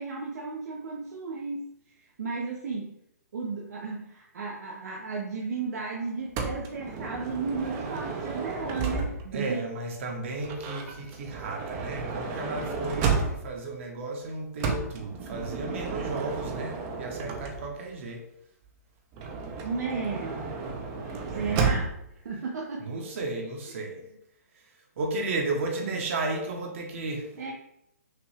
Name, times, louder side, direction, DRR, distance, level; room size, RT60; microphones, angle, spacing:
voice 1, 0.0-1.7 2.2-3.0 3.3-9.7 19.6-20.4 21.3-21.9 22.2-23.0 25.8-26.0 27.4-27.5, right 4 dB, 70° right, 0 dB, 0.7 m, -34 dB
Motor vehicle (road) / Sliding door, 6.4-9.4 10.4-13.7 14.6-17.9 19.1-22.1, right 4 dB, 25° right, 0.5 m, -32 dB
voice 2, 9.3-18.2 21.3-21.7 22.8-24.0 24.5-27.5, right 2 dB, 50° right, 1 dB, 1.1 m, -34 dB
5.7 x 2.3 x 3.3 m, 0.79 s
hypercardioid pair, 150°, 9 cm